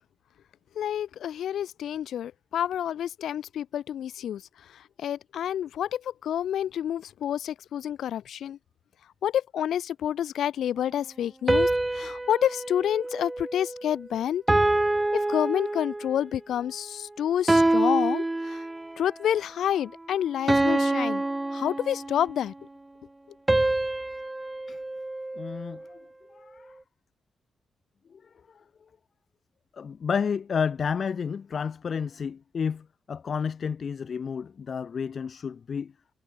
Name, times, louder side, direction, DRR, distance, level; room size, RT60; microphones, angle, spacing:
voice 1, 0.7-4.4 4.7-8.6 9.2-14.4 15.1-18.6 19.0-21.2 21.5-22.5, left 10 dB, 85° left, 1.3 m, -29 dB
sound 1, 11.5-14.0 14.5-16.2 17.5-19.0 20.5-22.4 23.5-25.8, right 2 dB, 15° right, 4.8 m, -26 dB
voice 2, 25.4-26.0 26.3-26.8 28.1-28.2 28.5-28.6 29.7-35.9, left 6 dB, 45° left, 3.5 m, -31 dB
wide cardioid pair, 135°, 0 cm